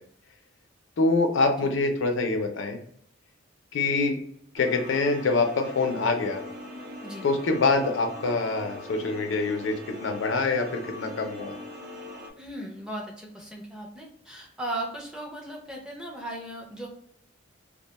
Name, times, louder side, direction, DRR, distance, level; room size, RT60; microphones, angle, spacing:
voice 1, 1.0-2.8 3.7-4.2 4.5-6.4 7.2-11.5, left 3 dB, 70° left, 4 dB, 0.5 m, -25 dB
sound 1, 4.6-12.3, left 1 dB, 50° right, 0.6 m, -41 dB
voice 2, 12.4-16.9, right 1 dB, 5° right, -2 dB, 0.5 m, -37 dB
2.4 x 2.2 x 2.8 m, 0.66 s
head